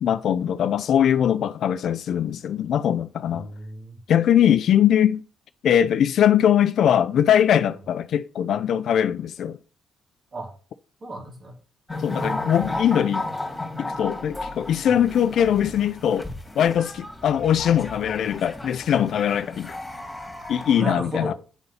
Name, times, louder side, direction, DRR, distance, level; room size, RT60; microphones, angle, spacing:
voice 1, 0.0-3.5 4.1-5.2 5.6-9.6 12.0-13.2 13.8-16.3 16.6-19.8 20.5-21.3, left 9 dB, 70° left, 0.4 m, -21 dB
voice 2, 3.3-4.0 10.3-10.5 11.0-11.6 14.9-15.0 20.7-21.3, right 1 dB, 35° right, 2.5 m, -33 dB
sound 1, 11.9-20.8, left 2 dB, 15° left, 2.5 m, -34 dB
9.3 x 4.0 x 5.5 m
cardioid pair, 90°, 0 cm